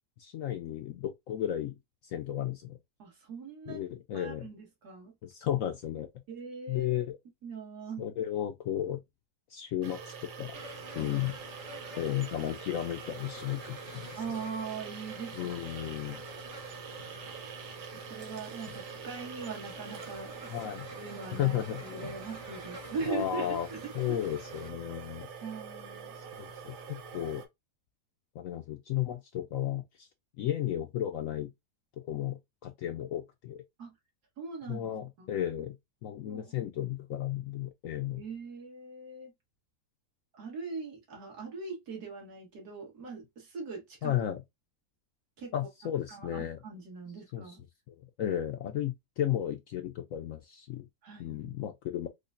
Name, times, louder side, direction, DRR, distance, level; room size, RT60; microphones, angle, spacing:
voice 1, 0.2-1.8 2.0-2.8 3.7-4.5 5.2-6.1 6.7-7.2 8.0-9.0 9.5-10.6 11.0-11.3 12.0-14.2 15.3-16.2 20.5-20.8 21.3-22.1 23.1-23.7 23.9-25.3 26.1-27.4 28.3-30.1 30.4-31.5 32.1-33.6 34.7-35.8 36.0-38.2 44.0-44.4 45.5-46.6 47.3-47.6 47.9-50.9 51.2-52.1, left 11 dB, 70° left, 0.8 m, -34 dB
voice 2, 3.0-3.8 4.1-5.1 6.3-7.0 7.4-8.0 10.9-11.2 14.2-15.5 17.9-20.6 21.0-24.2 25.4-26.1 33.8-33.9 34.4-34.9 35.2-35.3 36.3-36.5 38.1-39.3 40.3-44.1 45.4-45.7 46.1-47.6 51.0-51.6, right 4 dB, 65° right, 2.1 m, -41 dB
sound 1, 9.8-27.5, right 6 dB, 85° right, 1.4 m, -45 dB
sound 2, 10.5-24.7, equal, 45° right, 1.6 m, -49 dB
5.0 x 2.2 x 2.5 m
omnidirectional pair, 1.8 m